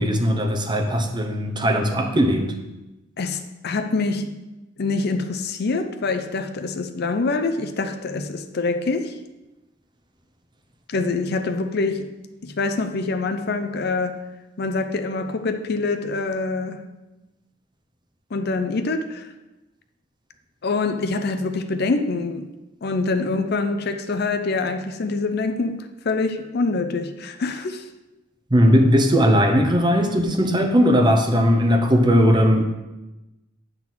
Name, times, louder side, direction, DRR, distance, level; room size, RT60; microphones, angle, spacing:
voice 1, 0.0-2.6 28.5-32.6, equal, 25° right, 0.8 m, -18 dB
voice 2, 3.2-4.3 4.8-9.2 10.9-12.1 12.4-14.2 14.6-16.8 18.3-19.3 20.6-22.5 22.8-27.8, left 3 dB, 55° left, 0.5 m, -25 dB
8.9 x 3.9 x 6.0 m
head